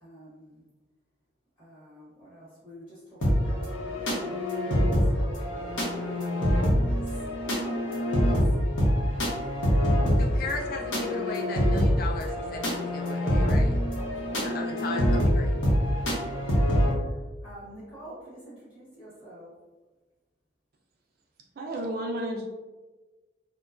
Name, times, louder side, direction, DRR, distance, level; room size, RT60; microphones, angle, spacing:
voice 1, 0.0-0.6 1.6-3.0 3.3-4.4 4.9-7.1 7.6-8.6 9.3-9.7 10.2-10.4 13.8-14.9 15.5-16.5 17.0-17.2 17.4-19.5, right 1 dB, 15° left, -9 dB, 0.8 m, -47 dB
sound 1, 3.2-16.9, equal, 80° left, 0.8 m, -25 dB
voice 2, 10.2-13.8 14.4-15.6, left 3 dB, 50° left, 2 dB, 0.4 m, -36 dB
voice 3, 21.6-22.5, right 1 dB, 50° right, 0 dB, 0.4 m, -32 dB
3.0 x 2.2 x 2.4 m, 1.2 s
head